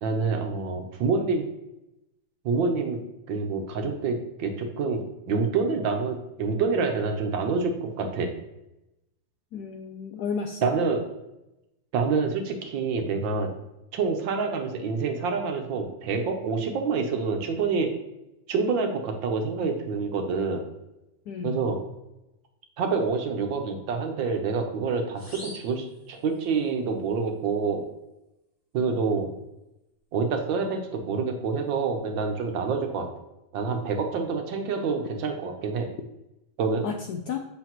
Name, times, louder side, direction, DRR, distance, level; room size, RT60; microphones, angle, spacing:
voice 1, 0.0-1.4 2.4-3.0 3.3-8.3 10.6-11.0 11.9-13.5 13.9-18.0 18.5-20.6 21.4-21.8 22.8-27.9 28.7-29.3 30.1-33.1 33.5-35.9 36.6-36.8, right 4 dB, 70° right, 4 dB, 1.6 m, -27 dB
voice 2, 9.5-10.7 21.3-21.6 36.8-37.4, left 6 dB, 80° left, 5 dB, 0.9 m, -32 dB
sound 1, 25.1-26.7, equal, 45° left, 3.5 m, -46 dB
7.9 x 6.2 x 3.0 m, 0.91 s
omnidirectional pair, 2.2 m